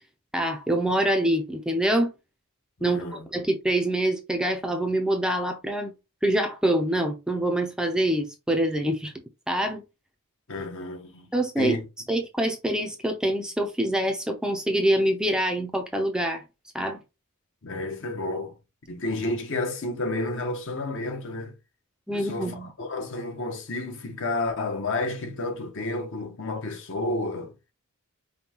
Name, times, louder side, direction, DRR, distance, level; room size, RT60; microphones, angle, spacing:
voice 1, 0.3-2.1 2.8-3.0 3.3-5.9 6.2-9.1 9.5-9.8 11.3-11.8 12.1-16.4 16.7-17.0 22.1-22.7, right 1 dB, 5° right, 0.5 m, -25 dB
voice 2, 2.8-3.3 10.5-11.3 11.6-11.8 17.6-18.5 18.9-21.5 22.1-27.5, left 2 dB, 60° left, 1.0 m, -31 dB
5.2 x 2.3 x 2.9 m
head